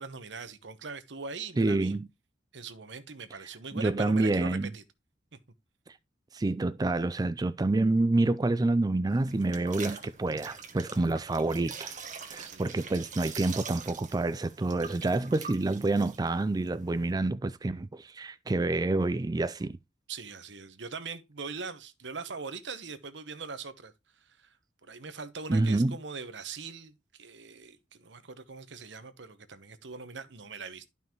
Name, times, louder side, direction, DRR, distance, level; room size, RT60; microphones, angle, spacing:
voice 1, 0.0-2.0 2.5-4.8 5.3-5.4 10.9-11.1 12.3-12.8 20.1-24.5 24.8-30.8, right 4 dB, 75° right, 1.0 m, -42 dB
voice 2, 1.6-2.1 3.7-4.7 6.3-11.9 12.3-19.8 25.5-26.0, right 2 dB, 20° right, 0.4 m, -28 dB
sound 1, 9.1-17.1, right 6 dB, 45° right, 1.4 m, -44 dB
12.0 x 5.5 x 3.0 m
head